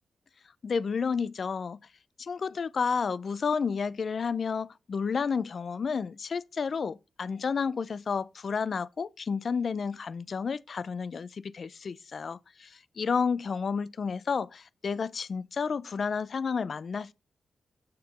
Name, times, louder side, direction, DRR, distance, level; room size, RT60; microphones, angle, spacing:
voice 1, 0.6-1.8 2.2-17.1, left 5 dB, 55° left, 0.4 m, -31 dB
6.8 x 6.5 x 4.1 m
wide cardioid pair, 105°, 0 cm